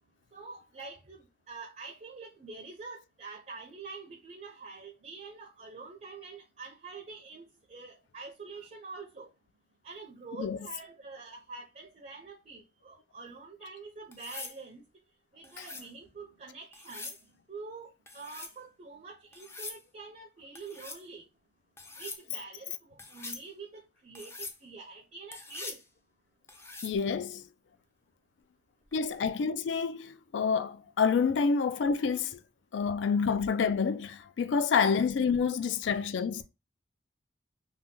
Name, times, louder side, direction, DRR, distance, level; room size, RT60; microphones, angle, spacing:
voice 1, 0.3-9.3 9.8-14.8 15.3-17.1 17.5-21.3 22.0-25.8, right 4 dB, 40° right, 0.5 m, -46 dB
sound 1, 14.1-14.6 15.4-15.9 16.7-17.2 18.1-18.6 19.3-19.8 20.6-21.0 21.8-22.2 23.0-23.5 24.2-24.6 25.3-25.8 26.5-27.0 28.9-29.2, left 3 dB, 15° left, 0.4 m, -43 dB
voice 2, 26.8-27.5 28.9-32.4 32.7-36.4, left 5 dB, 80° left, 0.3 m, -28 dB
2.8 x 2.1 x 3.6 m
head